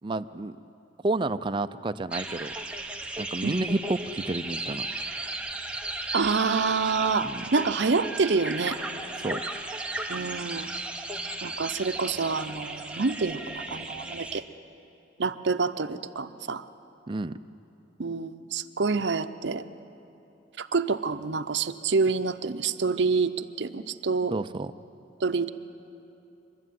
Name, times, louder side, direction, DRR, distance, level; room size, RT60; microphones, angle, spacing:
voice 1, 0.0-0.5 1.0-2.5 3.2-4.9 7.2-7.4 9.2-9.4 17.1-17.3 24.3-24.7, right 2 dB, 25° right, 11 dB, 0.4 m, -30 dB
sound 1, 2.1-14.4, right 2 dB, 5° right, 0.8 m, -35 dB
voice 2, 6.1-8.8 10.1-10.7 11.4-14.4 15.2-16.6 18.0-19.6 20.6-24.3 25.2-25.5, right 4 dB, 65° right, 10 dB, 0.7 m, -27 dB
24.0 x 12.5 x 9.3 m, 2.8 s
head